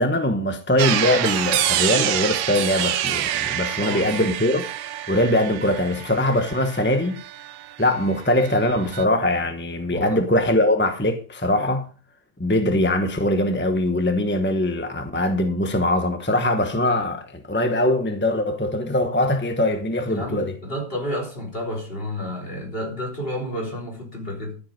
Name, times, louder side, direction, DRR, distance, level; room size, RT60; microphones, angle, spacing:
voice 1, 0.0-7.2 7.8-11.9 12.4-20.6, left 1 dB, 10° left, 0.7 m, -22 dB
sound 1, 0.8-8.0 8.2-9.1, right 12 dB, 80° right, 1.4 m, -27 dB
voice 2, 3.7-4.3 9.9-10.2 20.1-24.6, left 1 dB, 30° left, 4.0 m, -31 dB
13.0 x 7.7 x 5.2 m
omnidirectional pair, 2.0 m